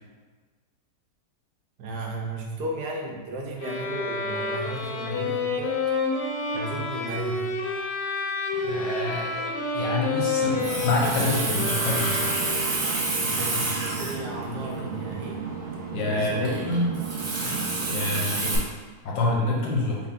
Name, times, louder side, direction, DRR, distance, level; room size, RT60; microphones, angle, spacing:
voice 1, 1.8-5.8 6.5-7.5 13.2-15.4 16.1-16.8, right 1 dB, 75° right, 0 dB, 1.2 m, -34 dB
sound 1, 3.6-12.8, left 3 dB, 70° left, 1.0 m, -29 dB
voice 2, 8.6-12.4 15.9-17.0 17.4-18.6 19.0-20.0, left 2 dB, 90° left, -2 dB, 1.5 m, -27 dB
Water tap faucet, 10.4-18.6, right 3 dB, 50° right, 0.9 m, -29 dB
4.6 x 2.4 x 3.6 m, 1.4 s
omnidirectional pair, 1.9 m